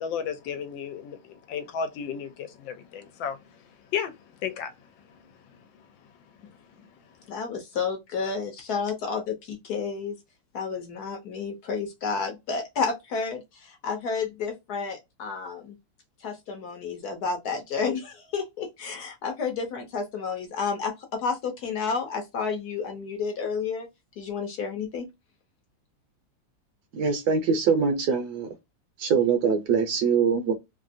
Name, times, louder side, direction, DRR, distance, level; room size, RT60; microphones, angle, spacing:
voice 1, 0.0-3.4 3.9-4.1 4.4-4.7, left 7 dB, 80° left, 1.3 m, -33 dB
voice 2, 7.3-10.2 10.5-15.8 16.2-23.9 24.2-25.0, left 5 dB, 65° left, 1.1 m, -31 dB
voice 3, 26.9-28.5 29.0-30.5, right 6 dB, 65° right, 1.1 m, -23 dB
3.2 x 2.5 x 2.5 m
omnidirectional pair, 2.1 m